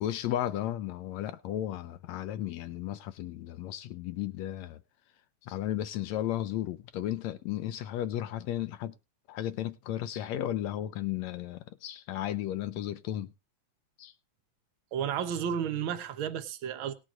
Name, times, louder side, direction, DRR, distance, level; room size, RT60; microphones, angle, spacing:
voice 1, 0.0-4.8 5.4-8.9 9.3-13.3 14.0-14.1, left 12 dB, 75° left, 1.7 m, -34 dB
voice 2, 14.9-16.9, right 8 dB, 65° right, 1.2 m, -32 dB
19.0 x 6.4 x 3.7 m
omnidirectional pair, 3.6 m